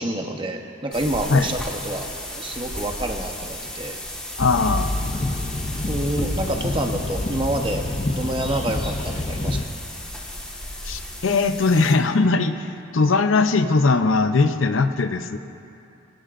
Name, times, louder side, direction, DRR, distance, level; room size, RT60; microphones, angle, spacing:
voice 1, 0.0-2.1 2.3-3.9 5.9-9.6, right 1 dB, 25° right, 3 dB, 1.0 m, -28 dB
sound 1, 0.9-11.9, left 1 dB, 5° left, 1.6 m, -35 dB
voice 2, 4.4-4.9 10.8-15.4, left 3 dB, 90° left, 8 dB, 0.7 m, -20 dB
sound 2, 4.4-9.7, left 2 dB, 35° left, 0.6 m, -27 dB
24.0 x 16.5 x 2.6 m, 2.7 s
head